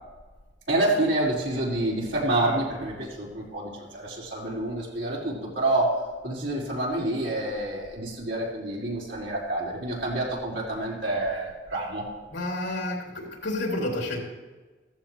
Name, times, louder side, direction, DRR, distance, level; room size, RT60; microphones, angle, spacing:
voice 1, 0.7-6.0 6.2-12.0, right 1 dB, 75° right, -5 dB, 4.7 m, -28 dB
voice 2, 12.3-14.2, left 1 dB, 75° left, 0 dB, 3.1 m, -30 dB
15.0 x 14.5 x 3.2 m, 1.3 s
head